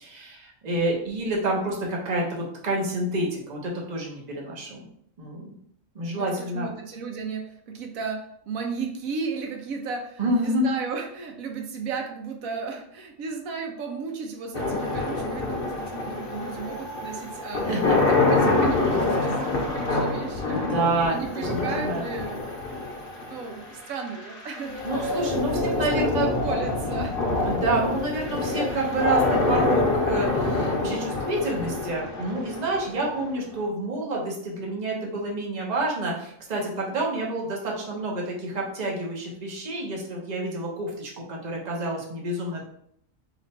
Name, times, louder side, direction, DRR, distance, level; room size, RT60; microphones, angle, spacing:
voice 1, 0.0-4.9 5.2-5.5 5.9-6.7 10.2-10.7 17.7-17.9 18.8-19.0 20.7-22.0 24.8-26.3 27.4-42.6, right 1 dB, 35° right, -2 dB, 1.0 m, -28 dB
voice 2, 6.1-20.7 21.1-22.5 23.2-24.8 25.5-27.1, right 5 dB, 85° right, 3 dB, 1.1 m, -34 dB
sound 1, 14.5-33.6, left 2 dB, 50° left, 0.9 m, -26 dB
3.3 x 2.9 x 4.2 m, 0.69 s
omnidirectional pair, 1.4 m